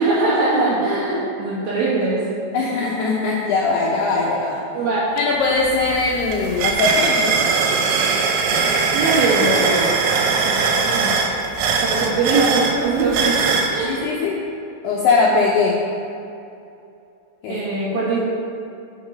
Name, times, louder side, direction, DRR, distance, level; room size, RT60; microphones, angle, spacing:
voice 1, 0.0-2.2 4.7-5.0 8.9-10.0 10.5-10.6 10.8-11.1 11.8-14.1 17.5-18.2, right 3 dB, 65° right, -6 dB, 2.7 m, -21 dB
voice 2, 2.5-4.6 5.2-7.4 13.8-14.4 14.8-15.8 17.4-17.6, left 4 dB, 85° left, -3 dB, 2.4 m, -20 dB
sound 1, 5.2-5.3 5.6-13.7, right 5 dB, 90° right, 3.6 m, -20 dB
7.9 x 7.9 x 5.4 m, 2.7 s
omnidirectional pair, 5.7 m